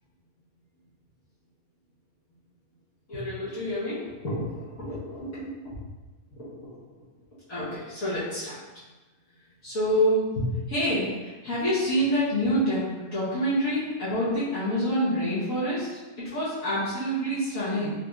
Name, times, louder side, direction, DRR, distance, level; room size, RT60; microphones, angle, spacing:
voice 1, 3.1-5.6 6.4-6.5 7.5-8.6 9.6-17.9, equal, 65° left, -12 dB, 1.5 m, -27 dB
4.5 x 3.0 x 2.3 m, 1.2 s
omnidirectional pair, 1.5 m